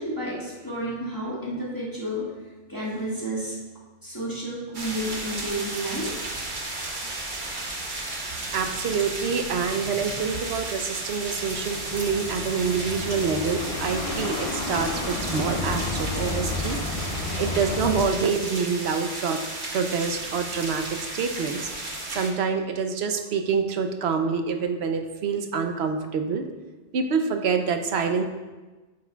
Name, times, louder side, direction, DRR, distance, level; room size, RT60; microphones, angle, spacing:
voice 1, 0.0-2.3 2.7-3.6 4.0-6.1 8.3-8.4, right 1 dB, 20° left, -7 dB, 1.7 m, -31 dB
sound 1, 4.7-22.3, right 2 dB, 45° right, 1.2 m, -34 dB
voice 2, 8.5-19.4 19.7-21.7 22.1-26.4 26.9-28.2, right 5 dB, 70° right, 6 dB, 0.9 m, -27 dB
sound 2, 11.2-18.0, left 3 dB, 40° left, 0.5 m, -31 dB
9.4 x 7.1 x 2.3 m, 1.2 s
omnidirectional pair, 1.2 m